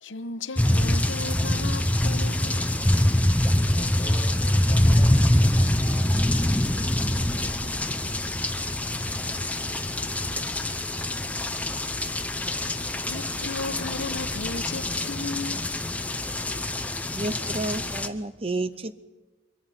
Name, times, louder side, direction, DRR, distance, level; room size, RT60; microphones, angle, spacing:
voice 1, 0.0-2.7 7.3-8.2 13.0-15.7, left 3 dB, 65° left, 1.1 m, -36 dB
sound 1, 0.6-18.1, left 1 dB, 5° left, 0.8 m, -24 dB
voice 2, 3.3-6.4, left 1 dB, 25° left, 2.6 m, -44 dB
sound 2, 8.9-16.9, left 3 dB, 45° left, 1.0 m, -45 dB
voice 3, 17.1-19.0, right 2 dB, 30° right, 0.7 m, -31 dB
24.5 x 22.5 x 5.8 m
head